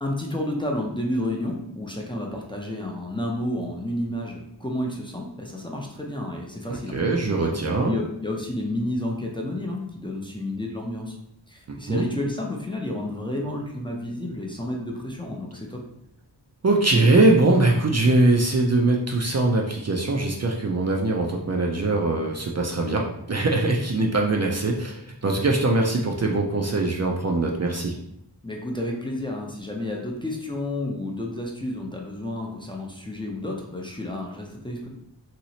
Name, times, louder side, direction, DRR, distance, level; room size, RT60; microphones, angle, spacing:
voice 1, 0.0-7.0 7.8-11.2 11.5-15.8 28.4-34.9, left 1 dB, 10° left, -1 dB, 0.5 m, -31 dB
voice 2, 6.7-8.0 11.9-12.1 16.6-27.9, right 2 dB, 40° right, 0 dB, 0.4 m, -22 dB
2.9 x 2.9 x 2.8 m, 0.77 s
wide cardioid pair, 65°, 42 cm